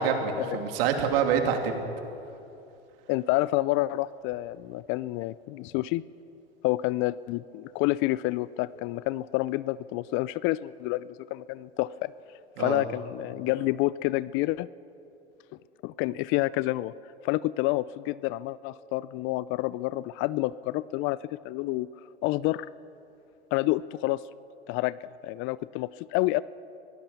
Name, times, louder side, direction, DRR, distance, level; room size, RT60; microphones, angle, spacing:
voice 1, 0.0-1.8 12.6-12.8, right 6 dB, 60° right, 4 dB, 2.9 m, -26 dB
voice 2, 3.1-6.0 6.6-12.1 12.6-14.7 15.8-16.9 17.2-21.9 22.2-22.7 23.5-24.2 24.7-25.0 25.2-26.4, left 18 dB, 40° left, 19 dB, 0.4 m, -28 dB
23.0 x 16.5 x 6.9 m, 2.7 s
hypercardioid pair, 95°, 33 cm